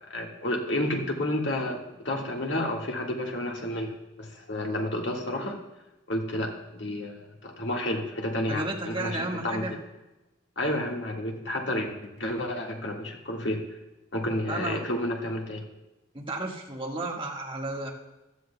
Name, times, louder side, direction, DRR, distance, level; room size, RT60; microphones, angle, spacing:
voice 1, 0.0-1.8 2.0-3.9 4.2-5.6 6.1-9.7 10.6-13.6 14.1-15.6, left 1 dB, 70° left, 0 dB, 1.9 m, -30 dB
voice 2, 8.5-9.7 14.5-14.8 16.1-17.9, right 2 dB, 30° right, -1 dB, 1.7 m, -33 dB
15.5 x 13.0 x 2.3 m, 1.0 s
head